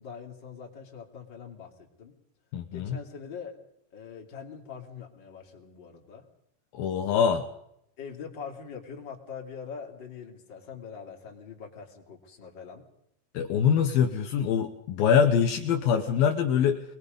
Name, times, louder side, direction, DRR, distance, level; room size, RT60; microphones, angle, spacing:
voice 1, 0.0-2.1 2.7-3.6 3.9-6.3 8.0-12.8, left 6 dB, 30° left, 0 dB, 2.8 m, -43 dB
voice 2, 2.5-3.0 6.7-7.5 13.3-16.8, left 7 dB, 85° left, 5 dB, 2.1 m, -24 dB
24.5 x 21.0 x 5.4 m, 0.75 s
omnidirectional pair, 5.9 m